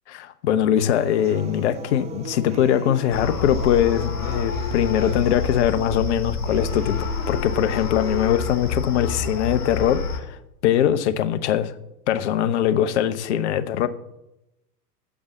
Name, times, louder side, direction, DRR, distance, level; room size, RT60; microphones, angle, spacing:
voice 1, 0.1-7.0 7.3-10.4 10.6-11.7 12.1-13.9, left 10 dB, 45° left, 12 dB, 0.9 m, -22 dB
sound 1, 0.8-8.7, right 6 dB, 15° right, 0.6 m, -39 dB
sound 2, 3.1-10.2, left 5 dB, 65° left, 2.4 m, -28 dB
8.5 x 7.1 x 7.3 m, 0.88 s
figure-of-eight pair, 100°, 48 cm